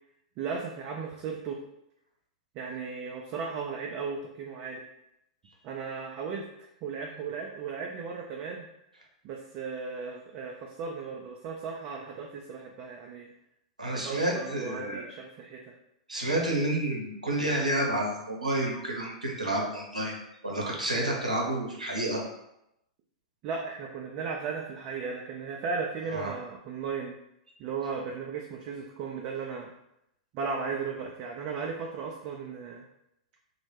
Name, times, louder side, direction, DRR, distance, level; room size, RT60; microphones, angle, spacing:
voice 1, 0.4-1.6 2.5-4.8 5.6-8.7 9.2-13.3 13.9-15.6 23.4-27.2 27.6-29.7 30.3-32.8, right 5 dB, 40° right, 0 dB, 0.3 m, -36 dB
voice 2, 13.8-15.0 16.1-20.2 20.4-22.2 26.1-26.3, right 1 dB, 90° right, -2 dB, 0.6 m, -29 dB
2.1 x 2.0 x 3.2 m, 0.83 s
figure-of-eight pair, 100°, 4 cm